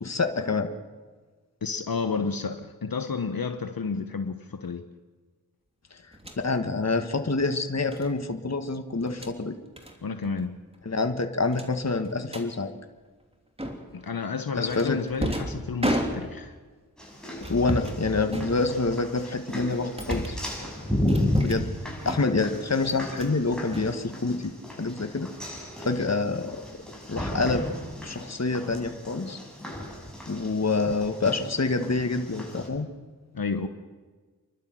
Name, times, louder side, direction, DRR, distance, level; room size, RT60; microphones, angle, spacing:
voice 1, 0.0-0.7 5.9-6.0 6.4-9.6 10.8-12.7 14.5-15.0 17.5-20.4 21.4-21.7 22.0-24.5 24.8-25.3 25.8-26.6 27.1-27.6 28.0-29.4 30.3-32.9, left 3 dB, 45° left, 7 dB, 1.6 m, -27 dB
voice 2, 1.6-4.8 10.0-10.6 13.9-16.5 33.3-33.7, left 5 dB, 70° left, 8 dB, 1.1 m, -31 dB
sound 1, 6.1-6.4 7.9-8.1 9.0-9.4 9.8-10.0 10.2-10.5 10.7-10.8 11.5-12.5 13.6-14.0 14.7-16.6 17.4-18.0 18.3-19.0 19.5-20.5 21.1-21.7 22.0-22.5 22.8-23.4 23.7-24.5, right 1 dB, 15° right, 3.1 m, -33 dB
sound 2, 17.0-32.7, left 1 dB, ahead, 7.0 m, -34 dB
28.5 x 12.0 x 7.7 m, 1.4 s
cardioid pair, 45°, 36 cm